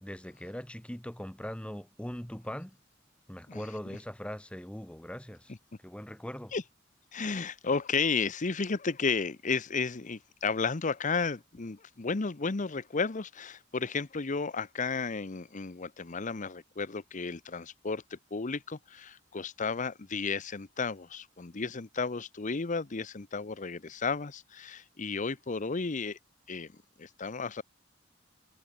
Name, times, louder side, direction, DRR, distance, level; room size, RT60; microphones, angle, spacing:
voice 1, 0.0-2.8 3.3-5.5 5.8-6.5, equal, 5° left, 1.5 m, -41 dB
voice 2, 7.1-26.2 26.5-26.7 27.0-27.6, left 4 dB, 40° left, 0.8 m, -33 dB
head